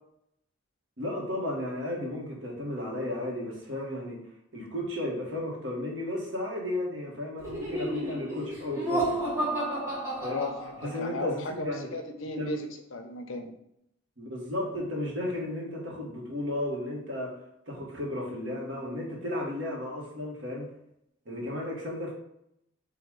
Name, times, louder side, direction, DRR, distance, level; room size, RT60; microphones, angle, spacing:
voice 1, 1.0-4.2 4.5-9.2 9.8-9.9 10.2-10.4 10.8-11.9 12.4-12.6 14.2-17.3 17.7-20.7 21.2-22.1, left 1 dB, 70° right, -3 dB, 1.5 m, -34 dB
Laughter, 7.4-11.1, right 1 dB, 15° right, 1.2 m, -31 dB
voice 2, 10.3-13.5, left 2 dB, 80° left, 6 dB, 0.7 m, -35 dB
4.0 x 2.7 x 4.7 m, 0.79 s
head